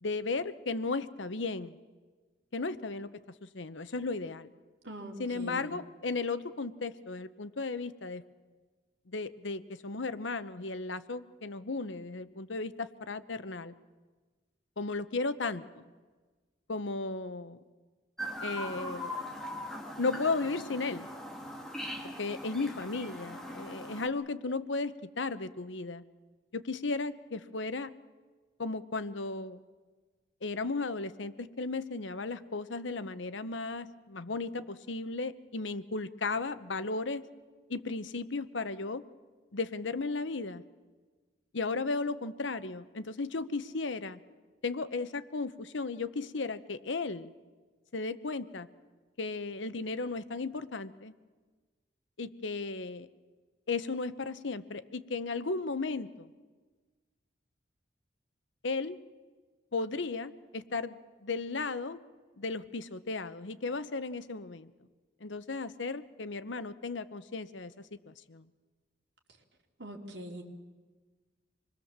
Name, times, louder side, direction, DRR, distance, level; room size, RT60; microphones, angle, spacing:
voice 1, 0.0-1.8 2.5-3.1 3.4-4.5 5.2-8.2 9.1-13.7 14.8-15.8 16.7-17.6 18.4-19.1 20.0-21.1 22.0-26.0 26.5-27.9 28.6-29.6 30.4-37.2 37.7-39.0 39.5-40.6 41.5-44.2 44.6-47.3 47.9-48.7 49.2-51.1 52.2-53.1 53.7-56.3 58.6-59.0 59.7-62.0 62.4-64.7 65.2-68.4, left 3 dB, 80° left, 13 dB, 0.9 m, -35 dB
voice 2, 4.8-5.7 69.8-70.4, right 1 dB, 65° right, 1 dB, 3.0 m, -42 dB
Chirp tweet, 18.2-24.1, equal, ahead, 2.3 m, -40 dB
26.5 x 21.5 x 7.4 m, 1.4 s
head